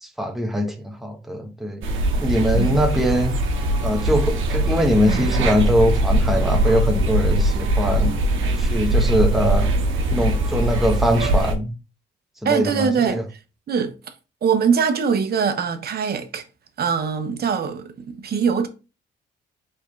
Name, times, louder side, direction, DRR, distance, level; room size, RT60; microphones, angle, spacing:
voice 1, 0.0-1.8 2.2-3.4 3.8-8.1 8.6-9.7 10.1-11.7 12.4-13.2, equal, ahead, 1.0 m, -22 dB
sound 1, 1.8-11.5, right 1 dB, 80° right, 1.0 m, -21 dB
voice 2, 12.4-13.4 13.7-13.9 14.4-16.4 16.8-18.7, right 6 dB, 50° right, 0.9 m, -22 dB
4.5 x 3.6 x 3.2 m
cardioid pair, 90°, 20 cm